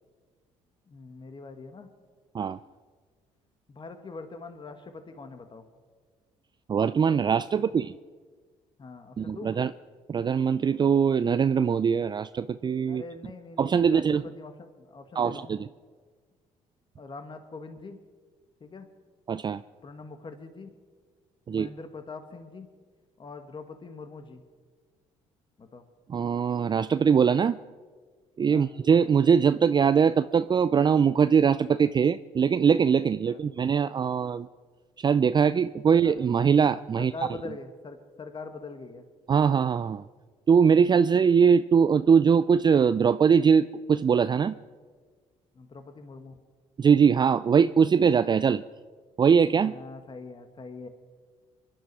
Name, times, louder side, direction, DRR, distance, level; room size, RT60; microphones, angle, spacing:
voice 1, 0.9-1.9 3.7-5.7 7.7-7.8 8.8-9.5 12.9-15.6 17.0-18.0 18.6-18.9 19.8-20.7 21.5-22.7 23.2-24.4 25.6-25.8 28.5-28.7 33.3-33.4 36.0-36.2 37.0-39.1 45.5-46.4 49.6-50.9, left 3 dB, 35° left, 8 dB, 1.6 m, -43 dB
voice 2, 6.7-7.9 9.2-9.7 10.1-13.0 13.6-14.2 15.2-15.7 19.3-19.6 21.5-21.7 26.1-27.6 28.4-34.5 35.0-37.1 39.3-40.0 40.5-44.6 46.8-48.6 49.2-49.7, right 6 dB, 30° right, 14 dB, 0.4 m, -22 dB
23.5 x 11.5 x 4.8 m, 1.6 s
supercardioid pair, 65°, 14 cm